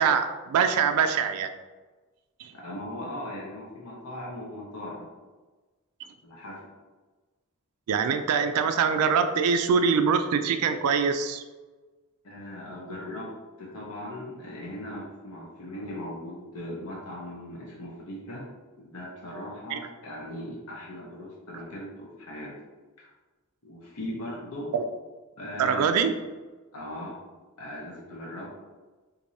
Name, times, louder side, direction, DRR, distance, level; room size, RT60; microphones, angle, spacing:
voice 1, 0.0-1.5 2.4-2.5 7.9-11.4 19.7-19.8 24.7-24.8 25.6-26.1, right 6 dB, 85° right, 8 dB, 0.3 m, -24 dB
voice 2, 2.5-5.1 6.2-6.6 12.2-18.5 18.8-22.5 23.0-23.1 23.6-24.7 25.4-26.2 26.7-27.2 27.6-28.5, left 1 dB, 85° left, -4 dB, 0.8 m, -39 dB
4.6 x 2.6 x 2.7 m, 1.3 s
head